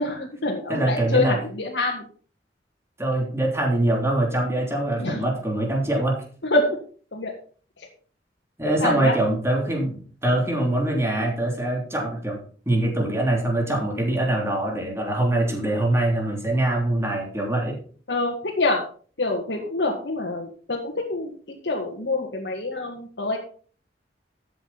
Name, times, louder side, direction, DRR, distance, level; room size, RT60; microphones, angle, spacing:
voice 1, 0.0-2.1 5.0-5.3 6.4-6.7 7.1-7.3 8.6-9.1 18.1-18.8 19.2-21.3 21.6-23.4, left 2 dB, 75° left, -3 dB, 2.0 m, -26 dB
voice 2, 0.7-1.4 3.0-6.2 8.6-17.8, right 1 dB, 15° right, 0 dB, 3.2 m, -23 dB
13.0 x 8.1 x 4.2 m, 0.43 s
head